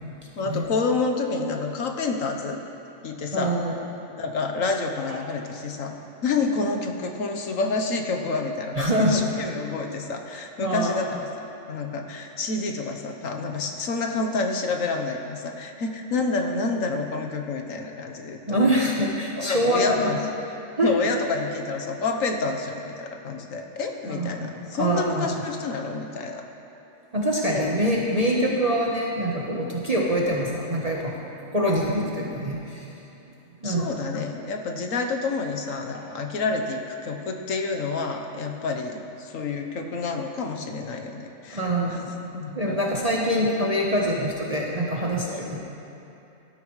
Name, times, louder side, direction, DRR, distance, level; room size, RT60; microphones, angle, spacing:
voice 1, 0.4-2.6 3.0-3.6 4.2-11.3 11.7-18.9 19.3-20.2 20.8-26.4 27.4-27.7 33.6-42.0 42.3-42.8 45.3-45.5, left 3 dB, 80° left, 3 dB, 1.4 m, -28 dB
voice 2, 3.3-3.8 5.1-5.2 8.8-9.2 10.6-11.0 18.5-20.1 20.8-20.9 24.1-25.4 27.1-31.1 31.5-32.9 33.6-33.9 35.9-36.0 41.5-42.1 42.5-45.6, equal, 30° right, -4 dB, 1.2 m, -24 dB
18.5 x 13.0 x 3.2 m, 2.8 s
omnidirectional pair, 1.4 m